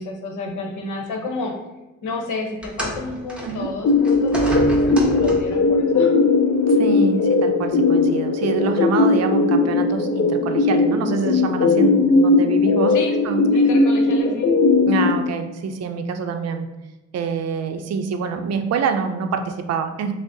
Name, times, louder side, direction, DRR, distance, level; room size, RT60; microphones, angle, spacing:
voice 1, 0.0-1.5 2.0-6.1 12.9-13.1 13.5-14.5, left 3 dB, 80° left, 2 dB, 0.9 m, -31 dB
sound 1, 2.6-5.7 6.7-6.8 7.7-7.8, equal, 5° right, 0.9 m, -30 dB
sound 2, 3.8-15.1, left 3 dB, 45° left, 0.5 m, -18 dB
voice 2, 6.7-12.9 13.2-13.5 14.9-16.7 17.1-20.1, right 5 dB, 60° right, 6 dB, 0.5 m, -26 dB
5.9 x 2.0 x 2.6 m, 1.0 s
cardioid pair, 90°, 30 cm